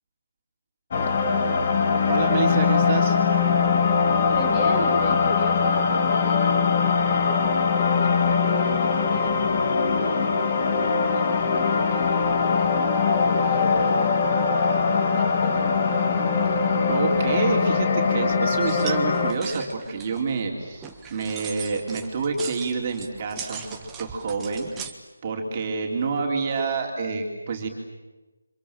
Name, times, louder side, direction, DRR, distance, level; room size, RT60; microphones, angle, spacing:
sound 1, 0.9-19.3, left 5 dB, 30° left, 2.2 m, -22 dB
voice 1, 2.1-3.2 16.9-24.7 25.2-27.7, right 4 dB, 25° right, 1 dB, 3.8 m, -28 dB
voice 2, 4.1-12.8 13.2-15.7, left 1 dB, 10° left, 1 dB, 5.6 m, -36 dB
sound 2, 18.6-24.9, right 7 dB, 10° right, 1.4 m, -40 dB
30.0 x 26.5 x 7.6 m, 1.1 s
figure-of-eight pair, 175°, 0 cm